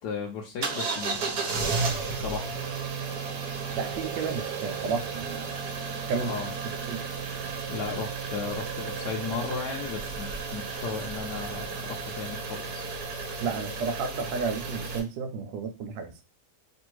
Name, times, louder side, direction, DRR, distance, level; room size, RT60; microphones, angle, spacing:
voice 1, 0.0-2.6 6.2-6.5 7.7-12.9, left 5 dB, 70° left, 0 dB, 1.2 m, -36 dB
sound 1, 0.6-15.0, right 4 dB, 65° right, 1.4 m, -33 dB
voice 2, 3.8-5.6 6.1-6.3 6.9-7.1 13.4-16.2, right 5 dB, 80° right, 8 dB, 1.4 m, -32 dB
3.4 x 2.5 x 4.5 m, 0.30 s
omnidirectional pair, 2.0 m